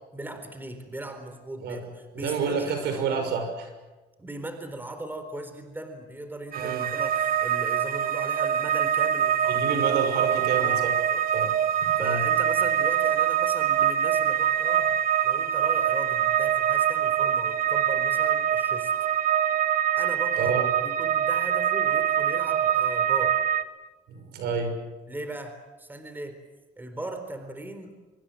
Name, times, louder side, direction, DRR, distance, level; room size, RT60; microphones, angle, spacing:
voice 1, 0.1-3.4 4.2-9.6 10.5-11.5 12.0-14.9 15.2-18.9 20.0-20.5 20.8-23.4 25.1-26.4 26.8-27.9, right 1 dB, 10° right, 7 dB, 4.1 m, -38 dB
voice 2, 2.1-3.5 6.5-6.9 9.5-10.9 11.3-11.5 11.8-12.2 20.4-20.6 24.1-24.8, right 5 dB, 75° right, 6 dB, 6.4 m, -29 dB
sound 1, 6.5-23.6, right 9 dB, 60° right, 1.4 m, -24 dB
25.0 x 23.0 x 7.8 m, 1.2 s
cardioid pair, 110°, 17 cm